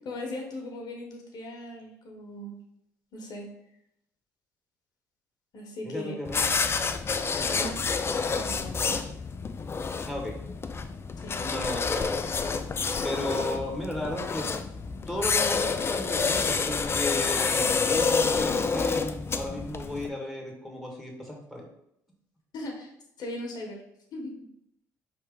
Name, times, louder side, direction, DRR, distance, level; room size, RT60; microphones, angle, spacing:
voice 1, 0.0-2.6 3.1-3.5 5.5-6.2 7.4-8.0 8.3-9.0 11.2-11.3 22.5-22.9 23.2-23.8 24.1-24.3, left 1 dB, 60° left, 1 dB, 1.1 m, -38 dB
voice 2, 5.8-6.4 10.1-10.4 11.4-12.2 13.0-14.5 15.1-21.7, left 1 dB, ahead, 0 dB, 1.5 m, -34 dB
sound 1, 6.2-20.1, left 5 dB, 30° left, 0.4 m, -28 dB
4.5 x 3.3 x 3.6 m, 0.78 s
hypercardioid pair, 60°, 8 cm